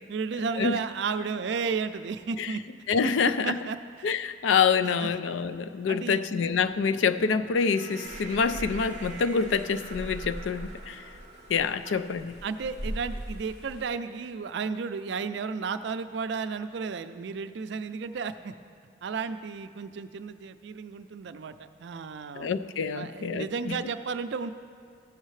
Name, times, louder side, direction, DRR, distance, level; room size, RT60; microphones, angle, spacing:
voice 1, 0.1-2.6 3.0-3.1 3.4-4.1 5.0-5.1 5.9-6.2 11.9-12.0 12.4-18.5 19.0-22.5 22.9-24.5, right 5 dB, 65° right, 10 dB, 0.4 m, -33 dB
voice 2, 2.9-3.6 4.0-11.0 11.5-12.3 22.4-23.8, left 5 dB, 80° left, 12 dB, 0.4 m, -26 dB
sound 1, 6.5-13.0, right 3 dB, 40° right, 0.7 m, -47 dB
sound 2, 8.0-13.9, equal, 60° left, 0.8 m, -41 dB
15.0 x 6.5 x 3.2 m, 2.2 s
head